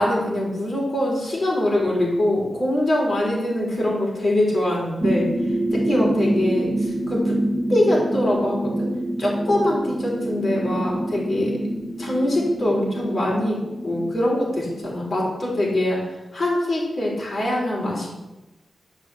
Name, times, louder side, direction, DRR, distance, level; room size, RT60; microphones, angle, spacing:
voice 1, 0.0-5.3 5.7-7.4 7.7-8.9 9.2-11.6 12.0-16.1 16.3-18.1, left 1 dB, 45° left, -3 dB, 4.4 m, -23 dB
sound 1, 5.0-15.5, right 1 dB, 25° right, 1.5 m, -26 dB
11.5 x 6.1 x 7.2 m, 0.98 s
wide cardioid pair, 145°, 0 cm